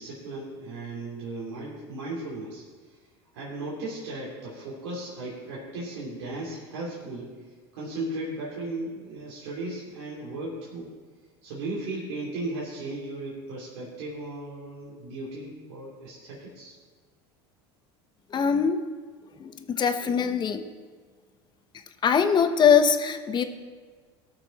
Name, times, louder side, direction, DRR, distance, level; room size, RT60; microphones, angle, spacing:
voice 1, 0.0-3.0 3.3-10.9 11.4-16.7, right 2 dB, 80° right, -6 dB, 2.9 m, -36 dB
voice 2, 18.3-18.8 19.4-20.7 22.0-23.4, left 7 dB, 35° left, 8 dB, 1.1 m, -22 dB
18.0 x 6.7 x 4.2 m, 1.5 s
supercardioid pair, 100°, 14 cm